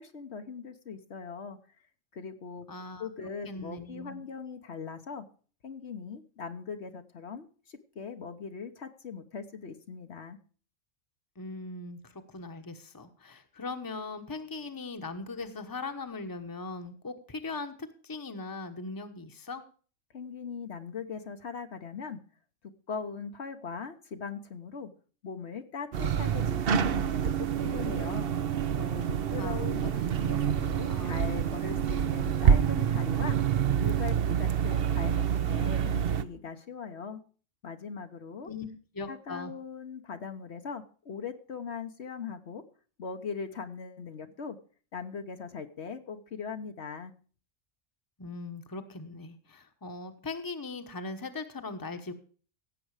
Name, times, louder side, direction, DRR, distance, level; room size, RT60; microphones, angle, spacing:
voice 1, 0.0-1.6 2.1-2.7 3.0-5.3 5.6-10.4 20.1-22.2 22.9-24.9 25.2-28.3 28.8-33.4 33.8-37.2 37.6-38.5 39.1-42.6 43.0-44.6 44.9-47.1, left 5 dB, 60° left, 7 dB, 1.3 m, -40 dB
voice 2, 2.7-3.1 3.5-4.2 11.4-17.7 18.0-19.6 29.3-30.1 30.9-31.2 38.4-38.7 38.9-39.5 48.2-52.1, left 3 dB, 20° left, 7 dB, 1.1 m, -40 dB
sound 1, 25.9-36.2, right 8 dB, 55° right, 0.8 m, -27 dB
16.5 x 7.7 x 4.8 m, 0.40 s
omnidirectional pair, 1.3 m